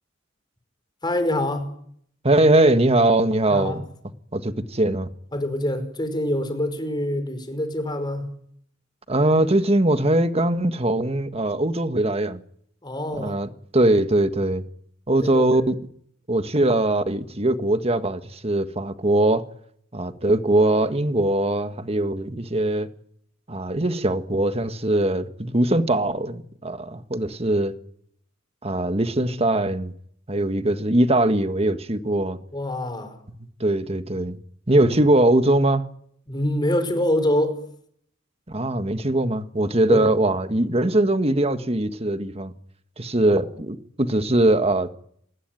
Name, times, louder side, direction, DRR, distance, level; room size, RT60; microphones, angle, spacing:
voice 1, 1.0-1.7 3.5-3.8 5.3-8.3 12.8-13.4 15.2-15.6 16.6-16.7 32.5-33.1 36.3-37.6 39.9-40.0 43.3-43.4, left 1 dB, 20° left, 5.1 m, -25 dB
voice 2, 2.2-3.8 4.3-5.1 9.1-12.4 13.1-14.6 15.1-15.7 16.3-19.4 19.9-22.9 23.5-27.7 28.6-29.9 30.3-32.4 33.6-34.4 34.7-35.8 38.5-42.5 43.0-44.9, right 1 dB, 30° right, 1.7 m, -21 dB
28.0 x 20.0 x 9.2 m
head